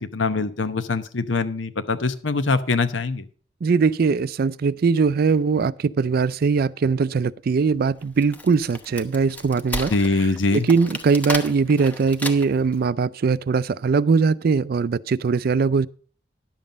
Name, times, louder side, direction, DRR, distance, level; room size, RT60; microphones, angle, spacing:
voice 1, 0.0-3.2 9.9-10.7, left 3 dB, 90° left, 0.9 m, -23 dB
voice 2, 3.6-9.9 10.5-15.9, right 5 dB, 55° right, 0.4 m, -21 dB
Wood, 8.0-12.7, left 1 dB, 10° left, 0.9 m, -33 dB
11.0 x 7.3 x 5.1 m
head